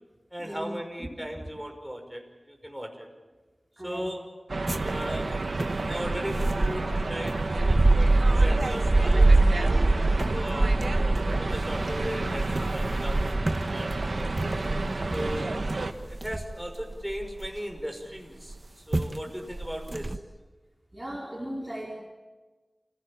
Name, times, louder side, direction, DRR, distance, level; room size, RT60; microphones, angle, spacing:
voice 1, 0.3-3.1 3.8-4.2 4.8-10.0 10.3-10.7 11.3-13.4 13.6-14.3 15.1-15.5 16.0-20.2, equal, 5° right, 3 dB, 5.8 m, -37 dB
voice 2, 3.8-4.1 16.0-16.1 20.9-21.9, right 1 dB, 20° right, -2 dB, 4.6 m, -38 dB
sound 1, 4.5-15.9, right 3 dB, 85° right, 1.5 m, -31 dB
sound 2, 4.7-17.8 18.5-18.6 18.9-19.2 19.5-20.2, right 2 dB, 50° right, 1.2 m, -25 dB
sound 3, 5.8-11.4, left 2 dB, 55° left, 7.5 m, -51 dB
29.0 x 17.5 x 8.8 m, 1.2 s
wide cardioid pair, 45°, 0 cm